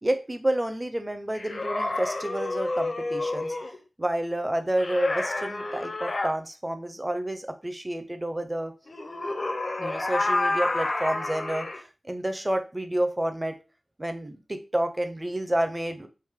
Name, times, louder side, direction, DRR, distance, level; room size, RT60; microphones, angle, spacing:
voice 1, 0.0-3.6 4.0-8.7 9.8-13.6 14.0-16.1, right 1 dB, 20° right, 7 dB, 0.5 m, -29 dB
sound 1, 1.3-3.8 4.8-6.3 8.9-11.8, left 2 dB, 50° left, 0.5 m, -29 dB
3.3 x 2.5 x 3.6 m, 0.31 s
wide cardioid pair, 85°, 0 cm